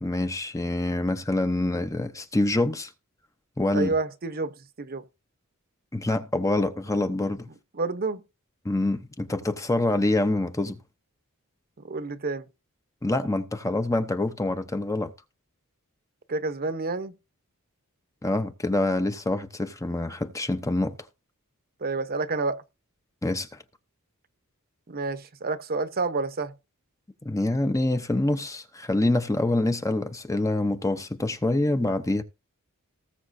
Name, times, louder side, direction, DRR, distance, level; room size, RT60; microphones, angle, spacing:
voice 1, 0.0-2.9 3.6-3.9 5.9-7.5 8.6-10.8 13.0-15.1 18.2-21.0 23.2-23.6 27.2-32.2, left 2 dB, 15° left, 0.7 m, -26 dB
voice 2, 3.7-5.0 7.7-8.2 11.8-12.5 16.3-17.1 21.8-22.6 24.9-26.5, right 3 dB, 45° right, 0.9 m, -29 dB
19.0 x 7.2 x 2.7 m
head